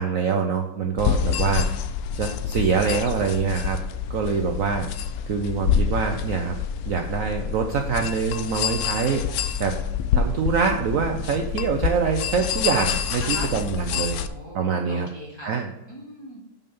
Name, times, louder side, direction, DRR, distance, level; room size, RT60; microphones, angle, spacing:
voice 1, 0.0-1.7 2.2-3.8 4.1-4.9 5.3-6.6 6.9-9.2 9.6-9.8 10.1-14.2 14.5-15.1 15.4-15.7, right 6 dB, 60° right, 4 dB, 1.0 m, -24 dB
sound 1, 1.0-14.3, left 8 dB, 70° left, 0.9 m, -27 dB
voice 2, 13.2-13.5 13.9-15.5 15.9-16.4, equal, 15° left, -6 dB, 2.9 m, -40 dB
6.7 x 5.6 x 5.4 m, 0.94 s
omnidirectional pair, 1.8 m